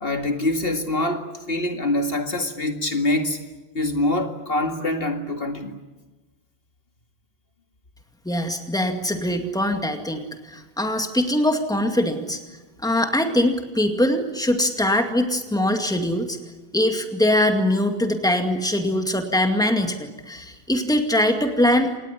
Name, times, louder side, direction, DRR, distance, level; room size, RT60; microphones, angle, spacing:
voice 1, 0.0-3.4 3.7-5.8, left 1 dB, 65° left, 5 dB, 2.3 m, -24 dB
voice 2, 8.3-12.4 12.8-16.4 16.7-22.0, left 1 dB, 5° left, 5 dB, 2.2 m, -22 dB
27.0 x 19.5 x 10.0 m, 1.2 s
omnidirectional pair, 1.1 m